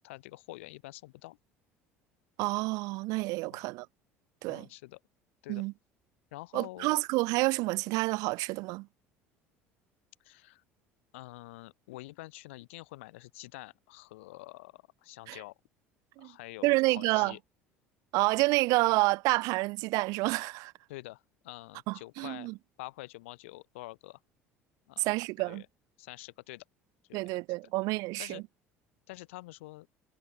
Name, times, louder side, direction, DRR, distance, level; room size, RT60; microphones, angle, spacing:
voice 1, 0.0-1.4 3.5-3.6 4.5-5.0 5.4-5.6 6.3-7.0 10.2-10.6 11.1-15.5 16.2-17.4 20.9-22.5 22.8-24.2 24.9-25.1 25.4-25.7 26.0-26.6 27.1-27.4 28.2-28.4 29.1-29.9, left 20 dB, 70° left, 2.1 m, -47 dB
voice 2, 2.4-3.9 4.4-4.7 5.5-5.7 6.5-8.9 15.3-15.4 16.2-16.3 16.6-17.3 18.1-20.7 21.9-22.5 25.0-25.6 27.1-28.4, right 23 dB, 55° right, 0.6 m, -29 dB
figure-of-eight pair, 60°, 7 cm